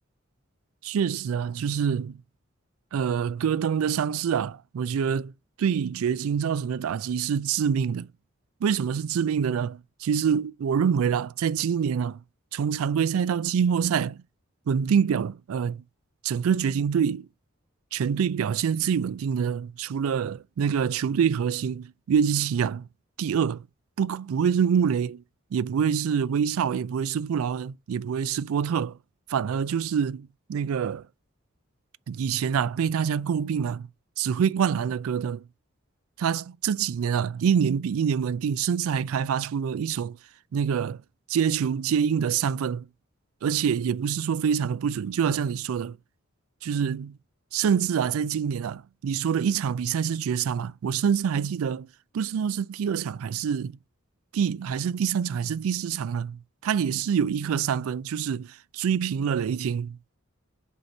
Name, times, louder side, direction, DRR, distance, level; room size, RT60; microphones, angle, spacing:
voice 1, 0.8-2.2 2.9-5.3 5.6-8.1 8.6-12.2 12.5-14.2 14.7-15.8 16.2-17.3 17.9-22.9 23.2-23.6 24.0-25.2 25.5-29.0 29.3-31.0 32.1-33.9 34.2-35.4 36.2-40.2 40.5-41.0 41.3-42.9 43.4-46.0 46.6-47.2 47.5-51.9 52.1-53.8 54.3-60.2, right 7 dB, 85° right, 0.3 m, -26 dB
7.8 x 2.8 x 5.3 m
head